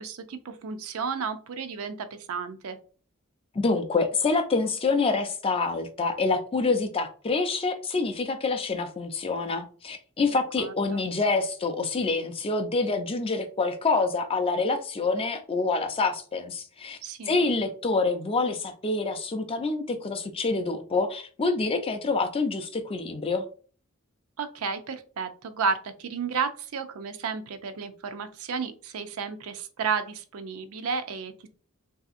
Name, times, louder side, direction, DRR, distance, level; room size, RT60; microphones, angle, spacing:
voice 1, 0.0-2.8 10.6-11.0 17.0-17.4 24.4-31.5, right 5 dB, 85° right, 0.5 m, -32 dB
voice 2, 3.5-17.0 17.3-23.5, left 3 dB, 25° left, 0.4 m, -26 dB
3.3 x 2.7 x 2.4 m
head